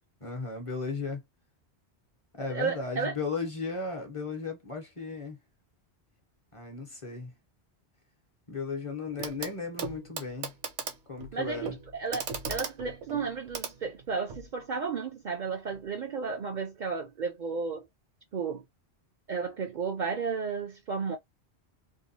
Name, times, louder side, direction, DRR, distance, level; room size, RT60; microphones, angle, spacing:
voice 1, 0.2-1.2 2.3-5.4 6.5-7.3 8.5-10.5 11.1-11.7, left 4 dB, 35° left, 0.8 m, -35 dB
voice 2, 2.5-3.1 11.3-17.9 18.3-18.6 19.3-21.2, right 5 dB, 55° right, 0.6 m, -33 dB
Clock, 9.2-9.5 9.8-14.5 15.7-15.8, right 5 dB, 80° right, 1.0 m, -38 dB
2.8 x 2.2 x 2.6 m
omnidirectional pair, 1.1 m